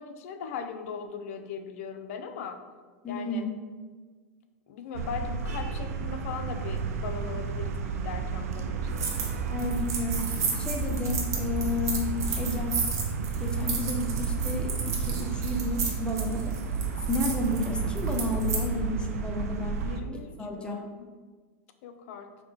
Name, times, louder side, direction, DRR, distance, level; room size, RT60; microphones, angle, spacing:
voice 1, 0.0-2.6 3.1-3.5 4.7-9.1 19.8-21.1 21.8-22.3, left 6 dB, 70° left, 7 dB, 0.4 m, -39 dB
voice 2, 3.0-3.5 9.5-12.8 13.4-16.6 17.1-19.8 20.4-20.8, left 2 dB, 10° left, 2 dB, 0.5 m, -32 dB
sound 1, 4.9-20.0, right 5 dB, 90° right, 0.3 m, -31 dB
sound 2, 9.0-9.3 9.6-18.6, right 5 dB, 40° right, 0.7 m, -33 dB
4.7 x 2.2 x 3.0 m, 1.4 s
hypercardioid pair, 115°, 8 cm